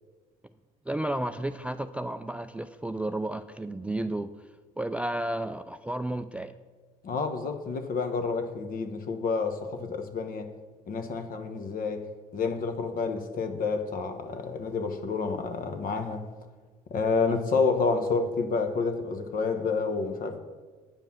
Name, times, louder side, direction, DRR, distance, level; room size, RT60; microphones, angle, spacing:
voice 1, 0.9-4.5 4.8-6.6 17.3-17.6, right 1 dB, 5° right, 0.3 m, -32 dB
voice 2, 7.0-10.5 10.9-12.1 12.3-16.3 16.9-20.4, left 4 dB, 50° left, 1.1 m, -29 dB
8.9 x 5.3 x 6.2 m
hypercardioid pair, 65°, 19 cm